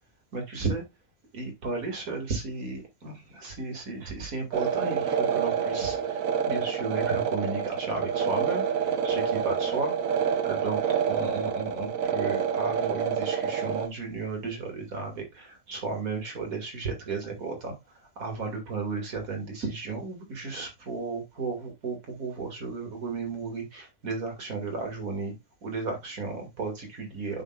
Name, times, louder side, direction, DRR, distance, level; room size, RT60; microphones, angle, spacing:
voice 1, 0.3-0.8 1.3-9.9 10.4-10.8 11.1-17.7 18.2-25.3 25.6-27.4, right 3 dB, 90° right, 2.5 m, -34 dB
sound 1, 4.5-13.9, right 7 dB, 75° right, 1.3 m, -27 dB
8.7 x 5.9 x 2.3 m
omnidirectional pair, 1.4 m